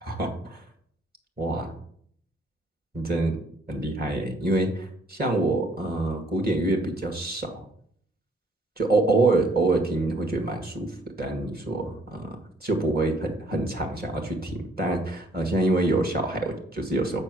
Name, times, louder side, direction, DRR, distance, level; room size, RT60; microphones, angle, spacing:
voice 1, 0.0-0.6 1.4-1.7 2.9-3.4 3.7-7.6 8.8-10.9 11.2-17.2, right 2 dB, 30° right, 4 dB, 2.1 m, -26 dB
6.8 x 4.4 x 6.3 m, 0.64 s
supercardioid pair, 45°, 30 cm